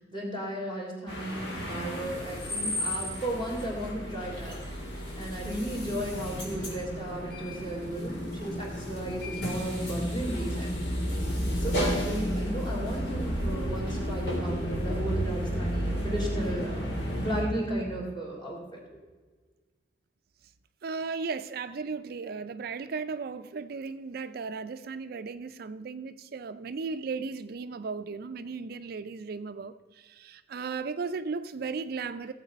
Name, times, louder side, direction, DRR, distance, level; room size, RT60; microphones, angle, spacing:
voice 1, 0.1-4.6 5.2-10.7 11.6-16.9 17.2-18.8, right 1 dB, 25° left, 3.1 m, -35 dB
sound 1, 1.1-17.4, equal, 70° left, 3.1 m, -32 dB
voice 2, 20.8-32.3, right 4 dB, 60° right, 0.4 m, -36 dB
16.0 x 7.5 x 5.2 m
head